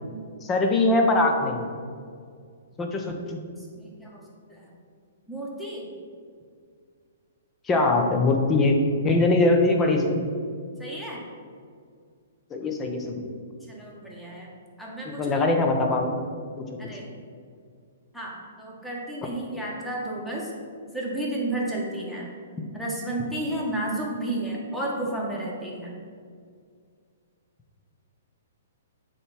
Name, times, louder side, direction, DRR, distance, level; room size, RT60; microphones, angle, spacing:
voice 1, 0.4-1.7 2.8-3.4 7.7-8.8 9.0-10.3 12.5-13.2 15.1-16.2, left 2 dB, 20° left, 3 dB, 1.0 m, -22 dB
voice 2, 3.6-4.2 4.5-4.7 5.3-5.9 10.8-11.2 13.7-14.5 14.8-15.4 16.8-17.1 18.1-20.5 20.9-22.3 22.7-25.9, right 1 dB, 5° left, -4 dB, 1.6 m, -32 dB
8.1 x 3.5 x 5.9 m, 2.1 s
figure-of-eight pair, 120°, 0 cm